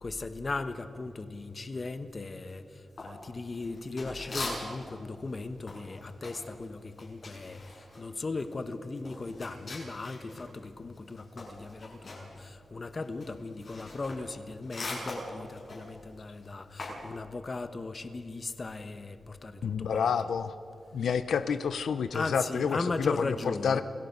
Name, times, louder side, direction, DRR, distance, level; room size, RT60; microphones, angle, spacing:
voice 1, 0.0-20.0 22.1-23.8, left 3 dB, 35° left, 10 dB, 1.1 m, -38 dB
sound 1, 3.0-5.0 5.3-10.5 10.8-17.1, left 2 dB, 50° left, 7.0 m, -41 dB
voice 2, 19.6-20.6 20.9-23.8, left 6 dB, 85° left, 11 dB, 0.7 m, -29 dB
28.0 x 17.5 x 5.4 m, 2.5 s
wide cardioid pair, 115°, 0 cm